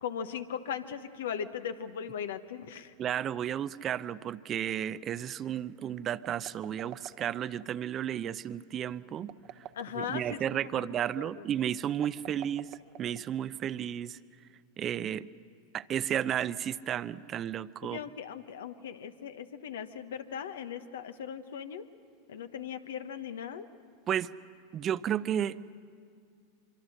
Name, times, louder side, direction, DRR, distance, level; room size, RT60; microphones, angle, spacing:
voice 1, 0.0-2.9 9.7-11.3 17.8-21.9 22.3-23.7, left 8 dB, 75° left, 10 dB, 1.1 m, -38 dB
voice 2, 3.0-9.3 10.0-12.7 13.0-14.2 14.8-15.3 15.7-18.0 24.1-24.3 24.7-25.6, right 10 dB, 35° right, 16 dB, 0.6 m, -33 dB
sound 1, 6.2-7.7 9.2-10.3 11.9-13.5, right 13 dB, 50° right, 1.0 m, -47 dB
24.5 x 24.5 x 6.5 m, 2.2 s
hypercardioid pair, 95°, 0 cm